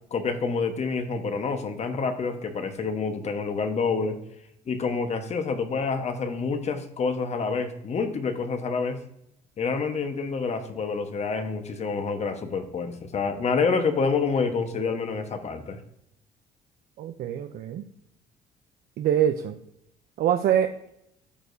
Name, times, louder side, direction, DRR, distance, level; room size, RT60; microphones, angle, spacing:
voice 1, 0.1-4.2 4.7-9.0 9.6-15.8, left 4 dB, 40° left, 7 dB, 1.2 m, -27 dB
voice 2, 17.0-17.8 19.0-19.6 20.2-20.9, right 10 dB, 60° right, 7 dB, 0.6 m, -24 dB
14.0 x 4.8 x 2.7 m, 0.79 s
cardioid pair, 110°, 17 cm